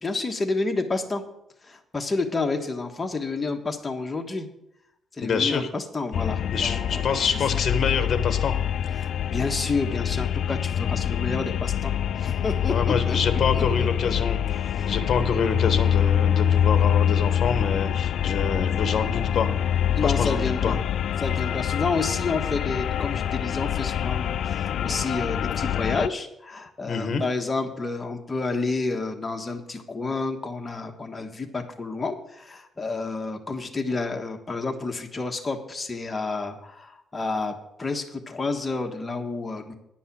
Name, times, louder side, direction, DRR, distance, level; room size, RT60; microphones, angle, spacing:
voice 1, 0.0-1.2 1.6-4.5 5.1-7.2 9.0-14.1 14.7-14.9 19.9-20.8 21.2-39.7, left 3 dB, 25° left, 4 dB, 1.4 m, -30 dB
voice 2, 5.2-5.7 6.5-8.5 12.7-19.5 20.0-20.7 26.9-27.2, left 5 dB, 50° left, 8 dB, 1.2 m, -26 dB
sound 1, 6.1-26.1, left 9 dB, 70° left, 0.3 m, -25 dB
10.5 x 5.4 x 8.5 m, 0.81 s
cardioid pair, 110°, 0 cm